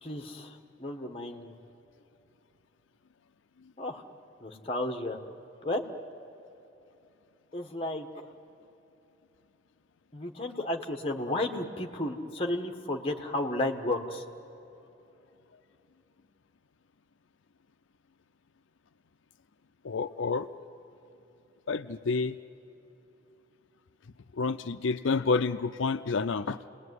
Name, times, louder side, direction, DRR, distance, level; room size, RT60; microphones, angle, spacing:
voice 1, 0.0-1.5 3.8-4.0 4.4-5.2 5.6-5.8 7.5-8.1 10.1-14.2, left 1 dB, 30° left, 3 dB, 1.5 m, -33 dB
voice 2, 19.8-20.5 21.7-22.4 24.3-26.7, left 4 dB, 85° left, 9 dB, 0.5 m, -29 dB
29.5 x 20.0 x 9.6 m, 2.9 s
head